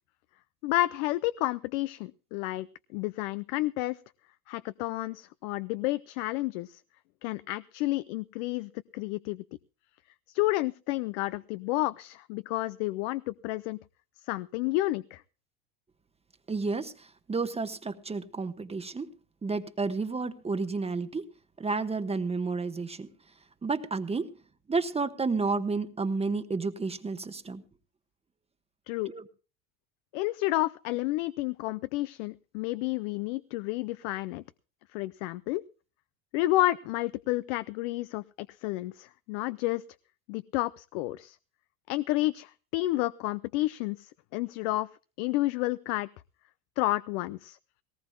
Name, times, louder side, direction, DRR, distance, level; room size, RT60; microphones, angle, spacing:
voice 1, 0.6-2.7 2.9-4.0 4.5-6.8 7.2-9.4 10.3-13.8 14.3-15.2 28.9-29.1 30.1-34.4 34.9-35.6 36.3-39.8 40.3-41.4 41.9-44.9 45.2-46.1 46.8-47.6, left 18 dB, 70° left, 16 dB, 0.7 m, -30 dB
voice 2, 16.5-19.1 19.4-21.3 21.6-23.1 23.6-24.3 24.7-27.6 29.1-29.2, right 4 dB, 15° right, 10 dB, 1.1 m, -31 dB
19.5 x 18.5 x 2.2 m, 0.34 s
supercardioid pair, 105°, 39 cm